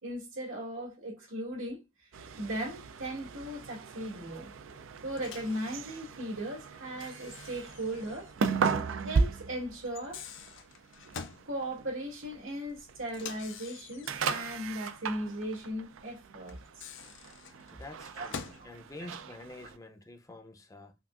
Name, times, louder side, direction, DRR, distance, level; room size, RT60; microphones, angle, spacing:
voice 1, 0.0-1.8 2.4-4.5 5.0-8.3 9.0-10.2 11.5-16.9 18.2-18.3 18.6-18.7 19.0-19.1, right 1 dB, 90° right, 2.3 m, -37 dB
sound 1, 2.1-19.8, right 5 dB, 70° right, 0.4 m, -37 dB
Microwave oven, 5.2-5.6 7.0-8.4 8.6-8.7 9.8-11.5 13.1-14.5 16.5-18.7, left 6 dB, 65° left, 0.6 m, -46 dB
voice 2, 17.7-21.0, left 2 dB, 15° left, 0.6 m, -48 dB
5.7 x 2.4 x 2.4 m
head